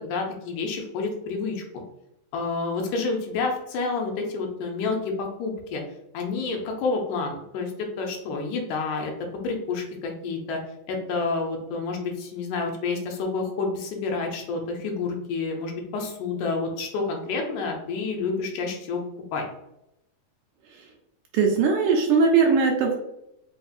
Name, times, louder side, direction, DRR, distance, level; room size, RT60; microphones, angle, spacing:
voice 1, 0.0-1.8 2.3-5.8 6.1-10.6 10.9-19.0 19.3-19.4, left 4 dB, 80° left, 2 dB, 2.1 m, -29 dB
voice 2, 21.3-23.0, right 5 dB, 80° right, 0 dB, 2.0 m, -20 dB
5.0 x 2.7 x 2.4 m, 0.84 s
omnidirectional pair, 3.7 m